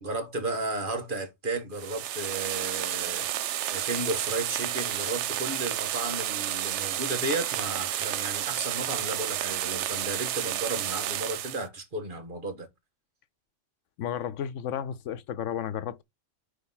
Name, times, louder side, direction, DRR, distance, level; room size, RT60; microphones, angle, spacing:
voice 1, 0.0-3.3 3.7-12.7, right 2 dB, 45° right, 1.5 m, -33 dB
sound 1, 1.7-11.7, right 12 dB, 75° right, 0.9 m, -31 dB
voice 2, 14.0-16.0, left 9 dB, 85° left, 1.0 m, -33 dB
9.8 x 3.5 x 3.9 m
omnidirectional pair, 1.2 m